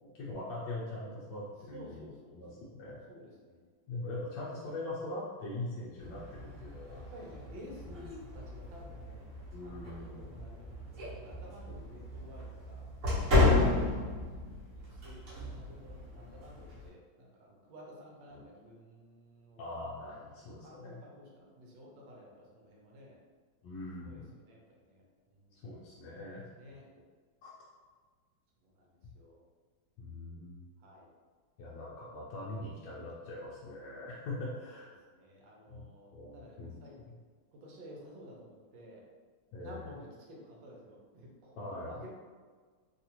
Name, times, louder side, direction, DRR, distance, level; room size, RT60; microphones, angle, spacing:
voice 1, 0.0-3.1 3.9-7.0 7.8-8.0 9.5-10.4 12.2-12.3 18.3-18.4 19.6-21.0 23.6-24.3 25.5-26.8 27.4-27.5 30.0-30.6 31.6-34.9 35.7-35.9 36.1-37.2 39.5-39.8 41.6-42.0, left 2 dB, 75° left, -6 dB, 1.1 m, -42 dB
voice 2, 1.7-2.7 3.1-3.6 4.1-4.6 6.3-6.5 6.9-9.3 9.6-12.9 14.7-19.7 20.6-23.2 24.0-25.6 26.5-26.8 28.6-29.4 30.8-31.1 35.1-37.0 37.5-39.0 39.6-42.1, equal, 70° right, -2 dB, 1.4 m, -53 dB
sound 1, 6.0-16.9, left 2 dB, 50° right, 1.2 m, -33 dB
3.4 x 2.4 x 2.8 m, 1.5 s
omnidirectional pair, 2.2 m